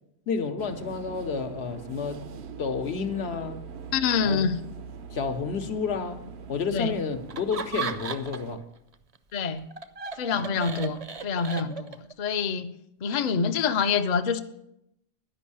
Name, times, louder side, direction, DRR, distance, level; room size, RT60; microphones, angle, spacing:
voice 1, 0.3-2.2 2.6-3.6 4.2-4.4 5.1-6.2 6.5-8.6 10.3-10.4, left 5 dB, 75° left, 1.1 m, -30 dB
sound 1, 0.6-8.6, right 6 dB, 75° right, 0.9 m, -42 dB
voice 2, 3.9-4.6 6.7-6.9 9.3-9.7 10.2-12.7 13.0-14.4, left 6 dB, 50° left, 0.6 m, -26 dB
Laughter, 7.3-8.6 8.9-12.1, right 6 dB, 40° right, 0.6 m, -36 dB
11.0 x 5.4 x 8.4 m
omnidirectional pair, 1.1 m